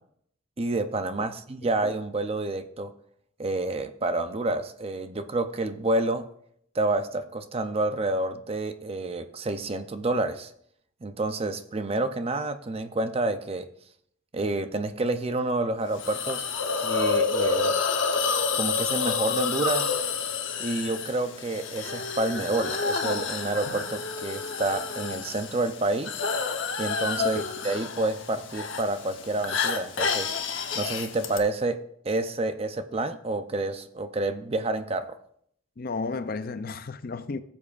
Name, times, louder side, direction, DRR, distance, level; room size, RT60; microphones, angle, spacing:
voice 1, 0.6-2.9 3.4-6.3 6.7-10.5 11.0-13.7 14.3-16.4 16.8-17.7 18.2-19.9 20.6-26.2 26.8-30.3 30.8-31.8 32.0-35.2, right 2 dB, 30° right, 0.5 m, -29 dB
Hiss, 16.0-31.4, left 5 dB, 70° left, 0.9 m, -29 dB
voice 2, 35.8-37.4, left 4 dB, 50° left, 0.5 m, -33 dB
17.0 x 7.2 x 2.5 m
head